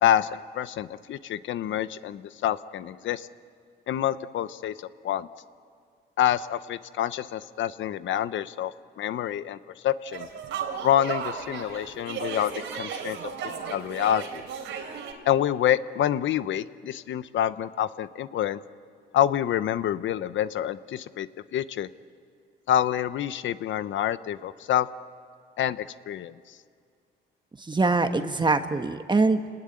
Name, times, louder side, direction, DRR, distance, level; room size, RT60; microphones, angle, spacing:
voice 1, 0.0-3.3 3.9-5.3 6.2-9.6 9.8-10.3 10.8-13.2 13.7-14.4 15.3-18.6 19.1-21.9 22.7-24.9 25.6-26.3, left 11 dB, 70° left, 14 dB, 0.9 m, -27 dB
sound 1, 10.1-15.1, right 6 dB, 80° right, 3.4 m, -35 dB
voice 2, 27.7-29.5, right 3 dB, 20° right, 8 dB, 1.4 m, -23 dB
29.0 x 19.5 x 9.8 m, 2.2 s
cardioid pair, 90°, 20 cm